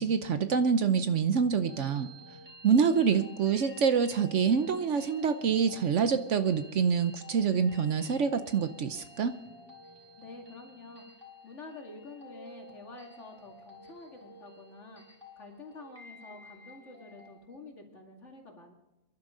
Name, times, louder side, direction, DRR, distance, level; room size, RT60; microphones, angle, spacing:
voice 1, 0.0-2.1 2.6-9.3, right 6 dB, 60° right, 10 dB, 1.0 m, -26 dB
sound 1, 1.4-17.4, equal, 15° right, 3.3 m, -52 dB
voice 2, 10.2-11.1 11.4-15.0 15.4-18.7, left 3 dB, 55° left, 1 dB, 2.7 m, -48 dB
26.5 x 11.5 x 3.8 m, 1.0 s
omnidirectional pair, 1.5 m